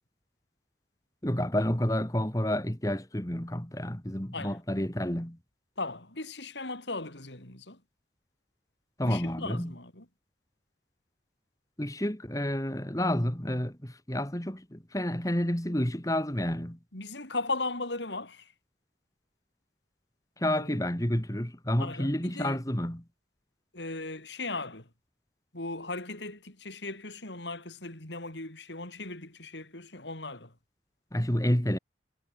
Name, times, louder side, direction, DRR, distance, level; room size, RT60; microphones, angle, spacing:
voice 1, 1.2-5.4 9.0-9.7 11.8-16.8 20.4-23.0 31.1-31.8, left 1 dB, 20° left, 2.1 m, -29 dB
voice 2, 5.8-7.8 9.0-10.0 16.9-18.5 20.5-20.8 21.8-22.6 23.7-24.9 25.5-30.5, left 3 dB, 75° left, 5.0 m, -37 dB
head